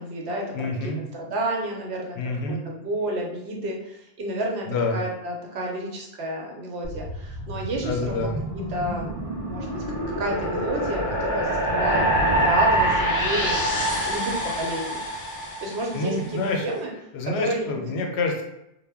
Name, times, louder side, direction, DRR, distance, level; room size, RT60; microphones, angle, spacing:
voice 1, 0.0-2.2 2.5-8.3 8.5-12.1 12.4-15.0 15.6-16.9 17.2-17.9, right 1 dB, 85° right, 0 dB, 0.9 m, -31 dB
voice 2, 0.5-1.0 2.2-2.6 4.7-5.0 7.8-8.3 15.9-16.6 17.1-18.4, left 3 dB, 85° left, 2 dB, 0.8 m, -27 dB
sound 1, 6.8-16.2, right 1 dB, 25° left, 0.4 m, -26 dB
2.1 x 2.1 x 3.4 m, 0.82 s
omnidirectional pair, 1.1 m